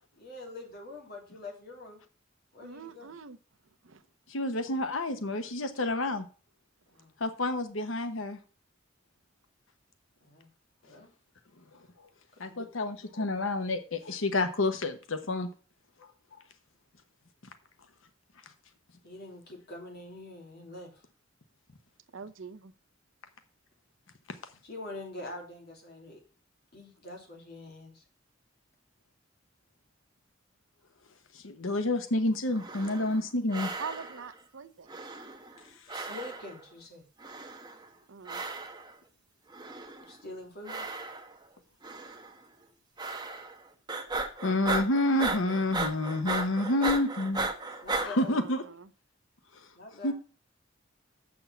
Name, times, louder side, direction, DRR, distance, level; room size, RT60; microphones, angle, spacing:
voice 1, 0.2-2.0 2.5-3.1 6.9-7.2 10.2-10.5 10.8-11.1 12.4-12.7 19.0-21.0 24.6-26.2 26.7-28.0 35.9-37.1 40.0-40.9 46.7-46.9 47.8-48.4 49.7-50.1, left 2 dB, 55° left, 3.0 m, -44 dB
voice 2, 2.6-3.4 3.8-4.0 5.4-5.5 22.1-22.7 33.8-34.9 38.1-38.4 48.2-48.9, right 5 dB, 85° right, 0.8 m, -44 dB
voice 3, 4.3-6.2 7.2-8.4 12.4-15.5 31.3-33.7 44.4-47.5 48.0-48.6 49.5-49.7 50.0-50.1, left 2 dB, 85° left, 1.0 m, -29 dB
sound 1, 32.5-33.2 33.5-34.3 34.9-35.6 35.9-36.6 37.2-37.8 38.2-38.9 39.5-40.1 40.6-41.4 41.8-42.3 43.0-43.6 43.9-48.1, right 3 dB, 20° right, 1.1 m, -36 dB
7.3 x 6.3 x 6.9 m
head